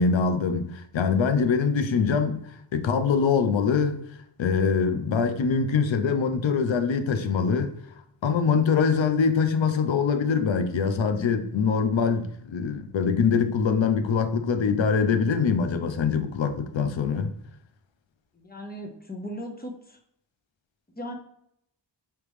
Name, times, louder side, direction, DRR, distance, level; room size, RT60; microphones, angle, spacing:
voice 1, 0.0-2.4 2.7-4.0 4.4-7.7 8.2-17.3, left 5 dB, 85° left, 0.6 m, -23 dB
voice 2, 18.3-20.0 20.9-21.2, equal, 20° left, 0.9 m, -37 dB
5.1 x 3.0 x 3.1 m
wide cardioid pair, 55°, 45 cm